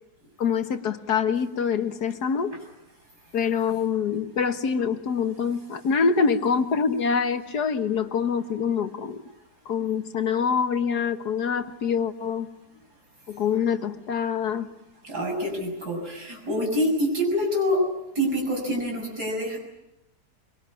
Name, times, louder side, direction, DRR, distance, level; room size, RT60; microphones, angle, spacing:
voice 1, 0.4-2.5 3.3-9.2 9.7-12.5 13.3-14.7, left 6 dB, 80° left, 8 dB, 1.9 m, -25 dB
voice 2, 15.0-17.9 18.1-19.6, equal, 80° right, 1 dB, 7.4 m, -26 dB
23.5 x 23.0 x 9.8 m, 0.94 s
omnidirectional pair, 1.7 m